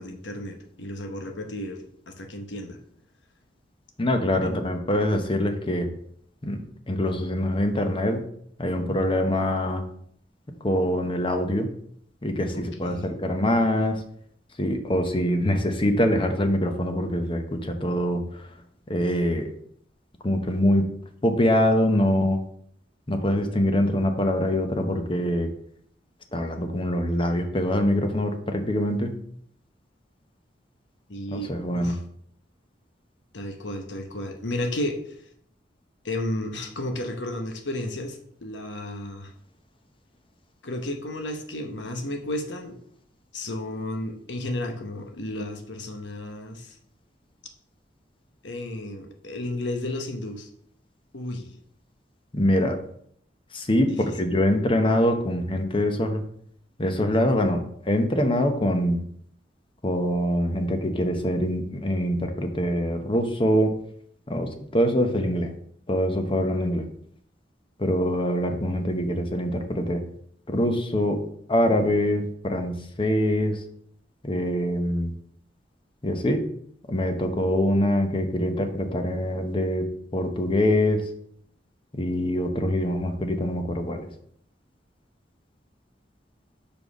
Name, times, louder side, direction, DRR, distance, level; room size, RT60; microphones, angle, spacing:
voice 1, 0.0-2.8 4.4-4.6 12.5-13.2 31.1-32.0 33.3-35.2 36.0-39.3 40.6-42.8 43.3-46.8 48.4-50.5 51.1-51.5 54.0-54.1, left 1 dB, 85° left, 4 dB, 1.0 m, -33 dB
voice 2, 4.0-5.9 6.4-8.2 8.6-9.8 10.6-11.7 12.2-14.0 14.6-18.5 18.9-19.5 20.2-20.9 21.2-22.4 23.1-25.5 26.3-29.1 31.3-32.0 52.3-52.8 53.5-56.2 56.8-59.0 59.8-63.7 64.3-65.5 65.9-66.9 67.8-70.0 70.5-73.6 74.2-75.1 76.0-76.5 76.9-81.1 81.9-84.1, left 1 dB, 30° left, 6 dB, 0.9 m, -24 dB
5.3 x 4.4 x 6.1 m, 0.65 s
head